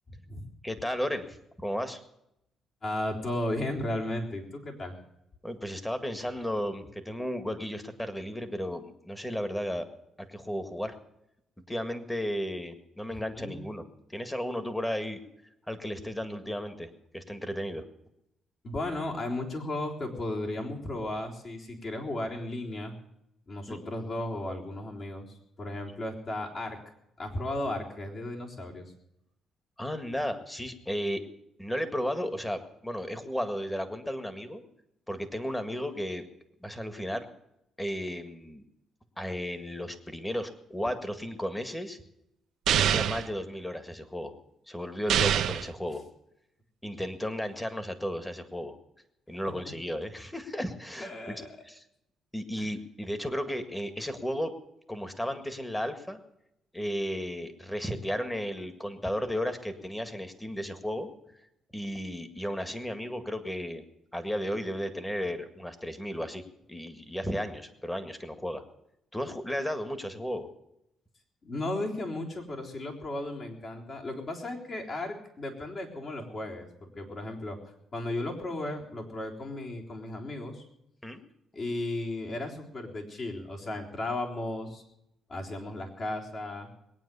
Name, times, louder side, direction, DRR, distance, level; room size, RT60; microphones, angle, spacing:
voice 1, 0.1-0.5 2.8-4.9 13.1-13.7 18.6-23.0 23.5-26.8 27.2-28.9 49.6-49.7 51.0-51.5 52.6-52.7 71.4-80.6 81.5-84.8 85.3-86.7, left 1 dB, 45° left, 0 dB, 3.7 m, -35 dB
voice 2, 0.6-2.0 5.4-9.9 10.3-11.0 11.7-13.8 14.1-15.2 15.7-17.8 23.7-23.9 29.8-31.2 31.6-34.6 35.1-36.2 36.6-37.3 37.8-38.6 39.2-42.0 42.7-44.3 44.7-46.0 46.8-48.8 49.3-51.8 52.3-54.5 54.9-56.2 56.7-61.1 61.7-63.8 64.1-66.4 66.7-68.6 69.1-70.5 81.0-81.2, equal, 10° left, 9 dB, 1.8 m, -34 dB
sound 1, 42.7-43.3 45.1-45.7, right 10 dB, 75° right, 0.8 m, -25 dB
20.5 x 9.3 x 6.9 m, 0.82 s
cardioid pair, 90°, 0 cm